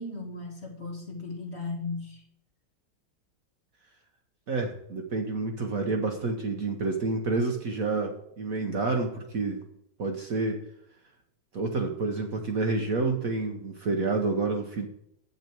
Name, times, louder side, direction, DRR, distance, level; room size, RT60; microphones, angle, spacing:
voice 1, 0.0-2.2, left 3 dB, 35° left, 2 dB, 1.3 m, -36 dB
voice 2, 4.5-9.6 10.0-10.6 11.5-14.9, right 3 dB, 50° right, 3 dB, 1.1 m, -29 dB
8.3 x 8.1 x 4.5 m, 0.75 s
omnidirectional pair, 2.2 m